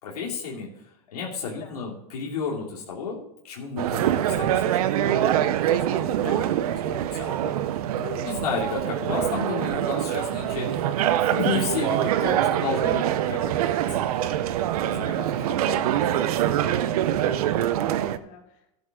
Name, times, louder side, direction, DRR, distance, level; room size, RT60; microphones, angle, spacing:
voice 1, 0.0-0.7 1.1-7.5 8.0-10.8 11.3-13.7 14.8-15.5, left 5 dB, 90° left, -4 dB, 2.9 m, -32 dB
voice 2, 1.6-1.9 14.8-18.7, left 6 dB, 60° left, -2 dB, 3.9 m, -44 dB
sound 1, 3.8-18.2, right 11 dB, 75° right, 0.8 m, -24 dB
12.5 x 9.4 x 3.8 m, 0.81 s
hypercardioid pair, 115°, 19 cm